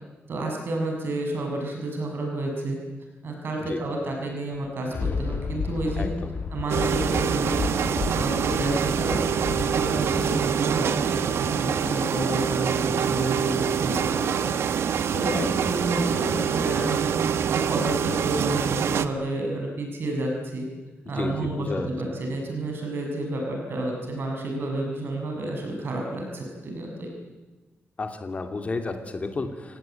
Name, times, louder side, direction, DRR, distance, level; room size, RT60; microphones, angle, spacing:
voice 1, 0.3-2.8 3.2-6.1 6.5-7.7 8.1-20.7 21.1-27.1, right 2 dB, 60° right, 1 dB, 6.6 m, -30 dB
Thunder, 4.5-12.0 12.5-12.6, left 5 dB, 50° left, 1.4 m, -33 dB
voice 2, 6.0-6.3 15.3-15.7 21.1-21.9 28.0-29.8, left 3 dB, 35° left, 6 dB, 2.8 m, -32 dB
sound 1, 6.7-19.1, right 8 dB, 90° right, 1.3 m, -25 dB
29.5 x 18.0 x 9.2 m, 1.2 s
wide cardioid pair, 145°, 4 cm